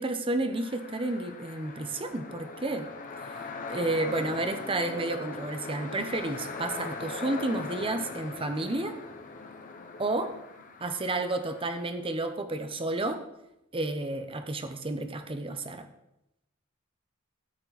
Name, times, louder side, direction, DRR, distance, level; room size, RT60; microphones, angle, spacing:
voice 1, 0.0-2.9 3.7-9.0 10.0-10.3 10.8-13.2 13.7-15.9, right 2 dB, 25° right, 7 dB, 0.8 m, -31 dB
sound 1, 0.5-11.9, left 4 dB, 40° left, 0.9 m, -40 dB
13.0 x 6.8 x 4.1 m, 0.87 s
head